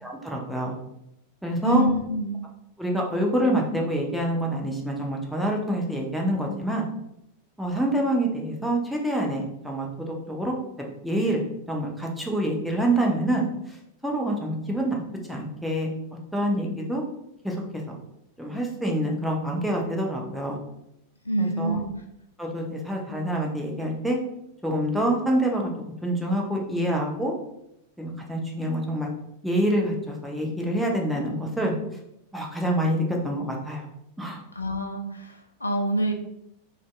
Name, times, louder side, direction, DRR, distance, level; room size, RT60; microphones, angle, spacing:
voice 1, 0.0-0.8 1.4-1.8 2.8-6.8 7.6-10.5 11.0-11.4 11.7-13.4 14.0-15.0 15.3-15.9 16.3-17.0 17.4-17.6 17.9-18.0 18.4-20.6 21.4-21.8 22.4-24.2 24.6-25.7 26.0-27.3 28.0-29.1 29.4-31.7 32.3-33.8 34.2-34.4, right 1 dB, ahead, -1 dB, 0.5 m, -26 dB
voice 2, 1.6-2.4 21.3-21.9 34.6-36.1, equal, 80° left, 3 dB, 0.3 m, -26 dB
2.5 x 2.2 x 2.4 m, 0.81 s
figure-of-eight pair, 90°, 0 cm